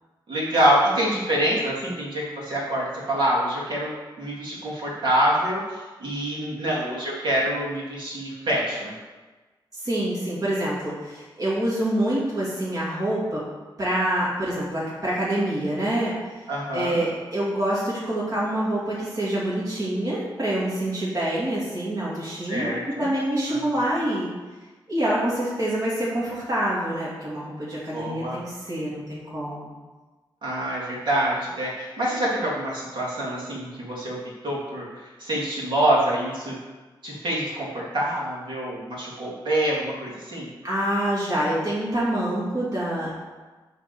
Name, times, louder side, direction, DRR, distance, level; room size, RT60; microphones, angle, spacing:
voice 1, 0.3-8.9 16.5-17.0 22.2-23.1 23.5-23.7 27.9-28.4 30.4-34.2 34.4-36.6 37.0-40.5, right 1 dB, 65° right, -6 dB, 3.0 m, -26 dB
voice 2, 9.7-13.4 13.8-16.1 16.7-22.7 23.0-24.3 24.9-29.7 40.6-43.1, right 1 dB, 45° right, -8 dB, 2.7 m, -26 dB
8.6 x 4.1 x 7.0 m, 1.3 s
cardioid pair, 85°, 9 cm